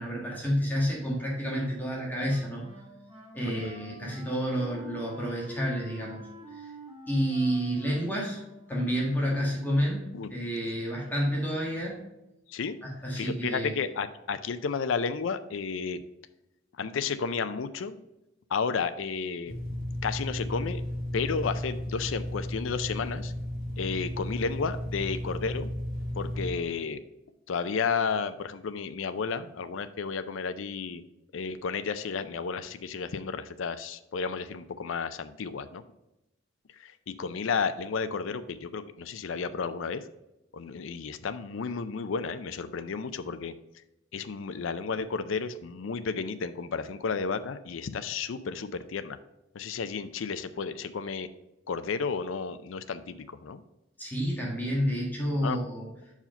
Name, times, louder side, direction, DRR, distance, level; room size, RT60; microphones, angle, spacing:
voice 1, 0.0-2.6 3.3-6.2 6.5-6.7 7.1-8.4 8.7-10.0 10.3-12.0 12.8-13.7 54.0-55.9, equal, 10° left, -4 dB, 1.6 m, -29 dB
Wind instrument woodwind instrument, 2.1-9.5, equal, 25° right, 2.6 m, -47 dB
voice 2, 13.2-16.0 16.8-18.0 18.5-19.6 20.0-20.8 21.1-23.3 23.8-25.7 26.1-27.0 27.5-31.0 31.3-35.8 36.8-40.0 40.5-43.5 44.1-49.2 49.5-51.3 51.7-53.6 55.4-55.6, left 5 dB, 75° left, 12 dB, 0.5 m, -32 dB
sound 1, 19.5-26.5, left 1 dB, 50° left, 1.3 m, -34 dB
5.7 x 4.8 x 5.2 m, 0.93 s
head